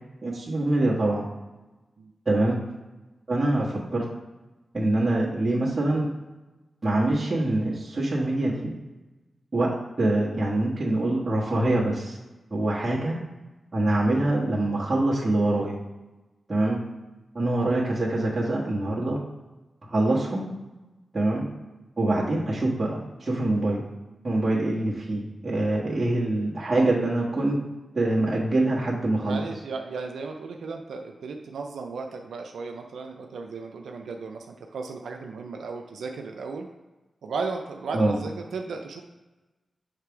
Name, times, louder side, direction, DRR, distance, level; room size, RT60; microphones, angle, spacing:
voice 1, 0.2-1.3 2.2-2.6 3.3-4.0 4.7-6.1 6.8-8.7 9.5-12.2 12.5-13.2 13.7-15.7 16.5-16.8 17.3-19.2 19.8-20.5 21.1-21.5 22.0-23.8 24.2-27.6 27.9-29.4 37.9-38.2, right 2 dB, 40° right, -9 dB, 1.6 m, -24 dB
voice 2, 29.2-36.7 37.2-39.0, right 4 dB, 85° right, 3 dB, 0.4 m, -35 dB
6.6 x 3.3 x 4.6 m, 1.1 s
cardioid pair, 45°, 0 cm